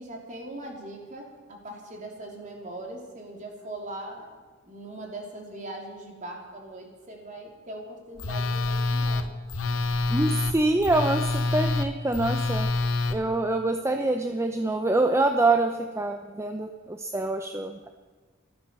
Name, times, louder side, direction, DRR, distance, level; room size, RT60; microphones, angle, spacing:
voice 1, 0.0-4.4 4.6-9.3, right 1 dB, 40° right, 1 dB, 3.3 m, -40 dB
Telephone, 8.2-13.2, left 3 dB, 85° left, 1.0 m, -26 dB
voice 2, 10.1-12.7 13.1-17.9, right 2 dB, 15° right, 6 dB, 0.7 m, -25 dB
14.5 x 13.0 x 6.9 m, 1.4 s
head